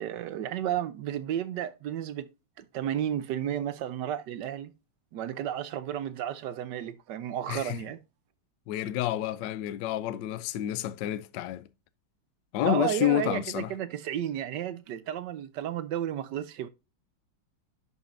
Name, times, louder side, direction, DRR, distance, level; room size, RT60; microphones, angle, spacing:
voice 1, 0.0-2.3 2.6-4.7 5.1-8.0 12.6-16.7, right 10 dB, 70° right, 1.0 m, -32 dB
voice 2, 8.7-11.6 12.5-13.7, left 13 dB, 70° left, 1.2 m, -29 dB
11.0 x 5.4 x 2.5 m
omnidirectional pair, 2.3 m